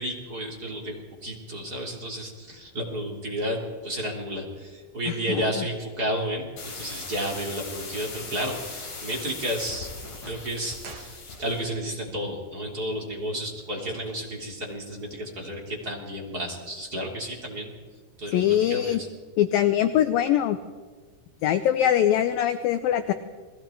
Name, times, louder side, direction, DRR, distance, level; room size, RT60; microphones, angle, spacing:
voice 1, 0.0-9.9 10.2-17.7 18.2-18.9, equal, 25° right, -1 dB, 3.3 m, -32 dB
voice 2, 5.1-5.5 18.3-19.0 19.4-20.6 21.4-23.1, left 11 dB, 85° left, 10 dB, 2.0 m, -22 dB
sound 1, 6.6-11.7, left 4 dB, 45° left, 5.1 m, -39 dB
sound 2, 10.8-11.9 12.1-12.2, right 5 dB, 60° right, 1.5 m, -46 dB
30.0 x 21.0 x 4.6 m, 1.4 s
omnidirectional pair, 5.1 m